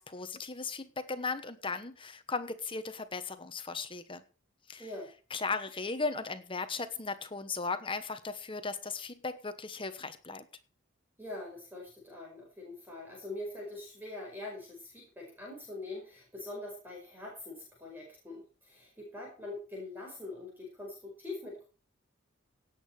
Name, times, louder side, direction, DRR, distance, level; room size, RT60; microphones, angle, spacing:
voice 1, 0.0-4.2 4.7-4.9 5.3-10.5, left 4 dB, 25° left, 10 dB, 1.2 m, -37 dB
voice 2, 4.8-5.1 11.2-21.7, left 2 dB, 10° right, -2 dB, 5.5 m, -43 dB
17.5 x 8.6 x 4.9 m, 0.36 s
head